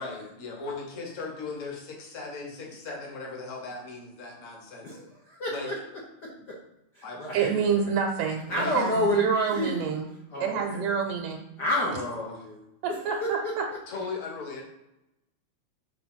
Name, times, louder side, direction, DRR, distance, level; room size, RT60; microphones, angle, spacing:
voice 1, 0.0-5.0 5.5-5.7 7.0-7.6 8.5-8.8 11.9-12.5 13.9-14.6, left 3 dB, 45° left, -1 dB, 1.0 m, -38 dB
voice 2, 4.8-5.7 6.2-6.6 6.9-7.5 8.5-9.7 10.3-10.9 11.6-12.1 12.4-12.6 12.9-13.5, left 1 dB, 90° left, -3 dB, 0.9 m, -30 dB
voice 3, 7.3-10.1 10.4-11.4 12.8-13.6, right 6 dB, 75° right, 2 dB, 2.1 m, -27 dB
6.5 x 3.8 x 6.1 m, 0.88 s
omnidirectional pair, 3.8 m